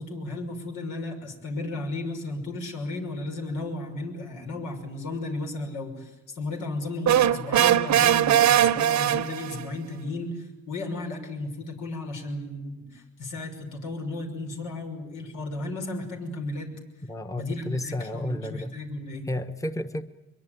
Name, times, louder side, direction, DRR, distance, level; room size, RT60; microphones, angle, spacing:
voice 1, 0.0-16.7 17.3-19.3, left 2 dB, 85° left, 3 dB, 6.2 m, -34 dB
sound 1, 7.1-9.7, right 11 dB, 65° right, 1.0 m, -20 dB
voice 2, 17.1-18.8 19.3-20.0, left 1 dB, 10° left, 8 dB, 1.2 m, -32 dB
23.5 x 23.0 x 9.3 m, 0.97 s
cardioid pair, 90°, 30 cm